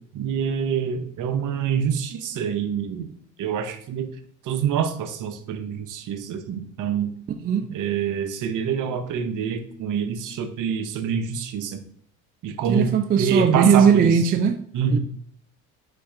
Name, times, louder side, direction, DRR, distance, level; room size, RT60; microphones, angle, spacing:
voice 1, 0.1-3.1 3.4-4.1 4.4-7.1 7.7-11.8 12.4-12.9 13.2-14.1 14.7-15.0, right 7 dB, 50° right, 0.8 m, -26 dB
voice 2, 12.7-14.6 14.9-15.0, right 7 dB, 25° right, 0.3 m, -18 dB
4.0 x 3.5 x 3.3 m
hypercardioid pair, 65°, 41 cm